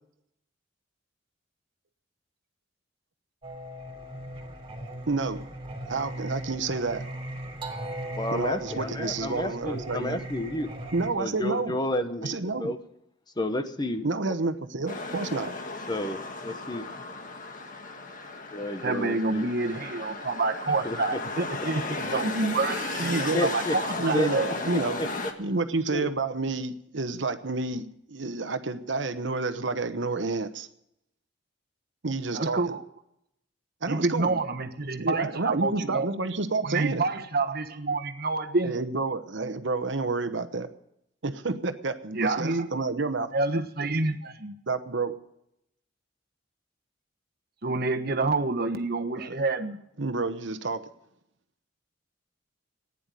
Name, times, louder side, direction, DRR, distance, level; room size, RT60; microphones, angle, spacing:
Singing, 3.4-11.1, right 1 dB, 30° right, 3.1 m, -38 dB
voice 1, 5.1-5.4 5.9-7.0 8.3-10.2 10.9-11.8 12.2-12.7 14.0-15.5 23.0-23.6 24.0-25.1 25.4-30.7 32.0-32.6 33.8-34.4 35.0-37.0 38.6-40.7 41.2-43.3 44.7-45.2 49.2-49.3 50.0-50.9, right 3 dB, 75° right, 10 dB, 1.1 m, -29 dB
voice 2, 8.2-10.7 11.2-12.8 13.4-14.3 15.9-17.0 18.5-19.5 20.8-21.2 23.3-23.8 24.1-24.3 25.0-25.1 25.9-26.2, left 1 dB, 25° left, 9 dB, 1.1 m, -31 dB
sound 1, 14.9-25.3, left 3 dB, 45° left, 1.7 m, -35 dB
voice 3, 18.8-24.5 32.3-32.8 33.9-36.1 36.6-38.8 42.1-42.7 43.3-44.5 47.6-49.8, right 3 dB, 55° right, 7 dB, 1.3 m, -28 dB
15.5 x 10.0 x 9.1 m, 0.78 s
head